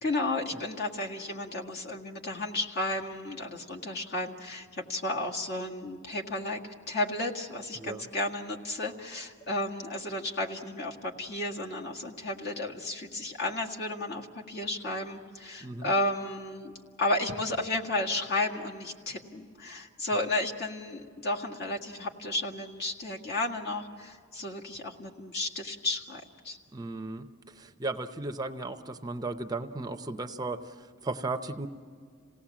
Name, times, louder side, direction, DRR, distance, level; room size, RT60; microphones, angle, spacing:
voice 1, 0.0-16.7 17.0-26.6, left 2 dB, 50° left, 0 dB, 1.9 m, -33 dB
voice 2, 26.7-31.7, right 2 dB, 20° right, 7 dB, 0.7 m, -36 dB
27.5 x 17.5 x 7.4 m, 2.1 s
head